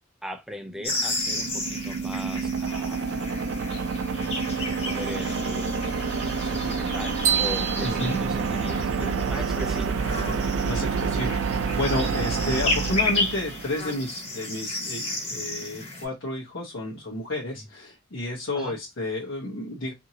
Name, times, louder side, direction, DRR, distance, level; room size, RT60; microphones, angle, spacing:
voice 1, 0.2-3.0 4.2-5.7 6.4-10.0 10.2-10.5 12.1-12.2 17.6-17.7 18.5-18.8, left 1 dB, ahead, 0.4 m, -39 dB
sound 1, 0.7-13.9, right 5 dB, 85° right, 0.4 m, -28 dB
sound 2, 0.8-16.0, left 2 dB, 30° left, 1.1 m, -33 dB
sound 3, 7.2-9.2, right 9 dB, 40° right, 0.7 m, -28 dB
voice 2, 7.8-8.2 10.4-19.9, left 2 dB, 75° left, 0.9 m, -31 dB
2.7 x 2.7 x 2.7 m
head